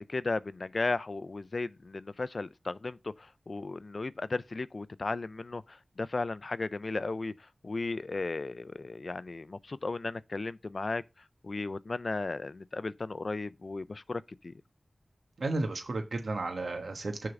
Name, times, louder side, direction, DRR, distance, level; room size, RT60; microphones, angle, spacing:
voice 1, 0.0-7.3 7.6-11.0 11.4-14.5, left 3 dB, 50° left, 0.4 m, -35 dB
voice 2, 15.4-17.3, right 2 dB, 75° right, 1.2 m, -33 dB
6.4 x 3.7 x 5.9 m
wide cardioid pair, 85°, 0 cm